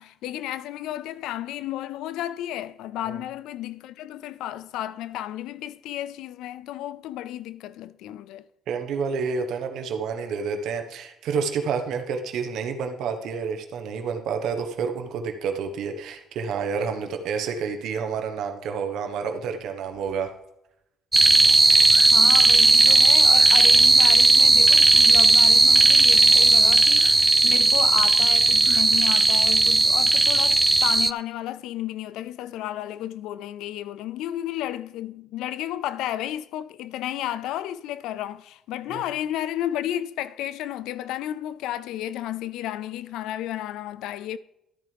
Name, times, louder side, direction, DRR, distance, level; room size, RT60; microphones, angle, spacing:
voice 1, 0.0-8.4 22.0-44.4, left 12 dB, 85° left, 0.3 m, -33 dB
voice 2, 8.7-20.3 38.9-39.0, right 6 dB, 75° right, 1.2 m, -29 dB
sound 1, 21.1-31.1, right 3 dB, 20° right, 0.4 m, -16 dB
13.5 x 9.1 x 3.4 m
supercardioid pair, 75°, 0 cm